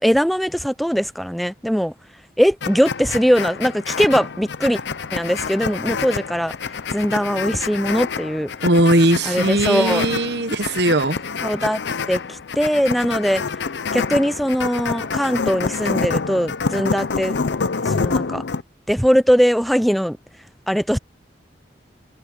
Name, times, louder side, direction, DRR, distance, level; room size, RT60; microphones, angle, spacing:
voice 1, 0.0-1.9 2.4-4.8 5.1-6.5 6.9-8.5 9.3-10.1 11.4-11.8 12.1-13.4 13.9-17.3 17.8-18.4 18.9-20.2 20.7-21.0, equal, ahead, 0.5 m, -20 dB
sound 1, 2.6-18.6, left 5 dB, 80° left, 0.7 m, -27 dB
voice 2, 8.6-11.2, right 1 dB, 70° right, 1.1 m, -18 dB
head